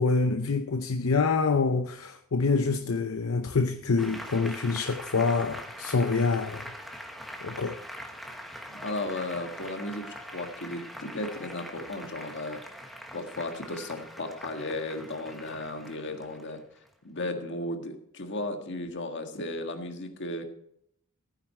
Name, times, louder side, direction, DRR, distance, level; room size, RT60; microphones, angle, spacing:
voice 1, 0.0-6.7 7.4-7.8, left 4 dB, 75° left, 0.7 m, -26 dB
Applause, 4.0-17.0, equal, ahead, 1.3 m, -43 dB
voice 2, 8.7-12.6 13.1-16.6 17.0-20.4, left 2 dB, 55° left, 1.6 m, -35 dB
15.0 x 9.6 x 4.4 m
head